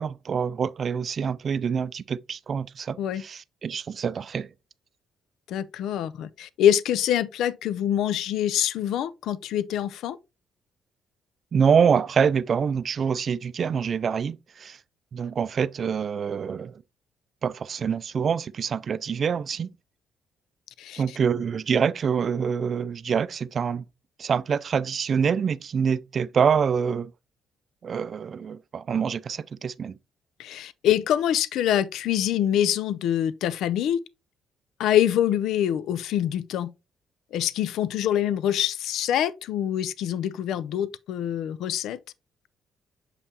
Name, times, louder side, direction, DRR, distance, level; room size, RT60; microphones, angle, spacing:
voice 1, 0.0-4.5 11.5-14.8 15.1-16.8 17.4-19.7 21.0-23.8 24.2-27.1 27.8-29.9, right 6 dB, 50° right, 0.4 m, -26 dB
voice 2, 5.5-10.2 20.8-21.0 30.4-34.0 34.8-36.7 37.3-42.0, left 10 dB, 80° left, 0.4 m, -25 dB
6.8 x 5.4 x 2.9 m
cardioid pair, 80°, 0 cm